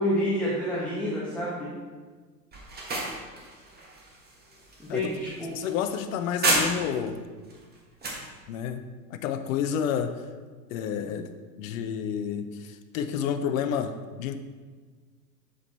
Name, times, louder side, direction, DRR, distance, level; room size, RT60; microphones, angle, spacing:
voice 1, 0.0-1.7 4.8-5.5, equal, 5° left, -7 dB, 1.3 m, -28 dB
sound 1, 2.5-7.1 7.5-8.3, right 2 dB, 20° right, 1.4 m, -31 dB
voice 2, 5.5-7.2 8.5-10.3 10.7-11.3 11.6-14.4, left 8 dB, 50° left, 9 dB, 0.8 m, -30 dB
7.0 x 5.1 x 4.3 m, 1.5 s
figure-of-eight pair, 90°, 50 cm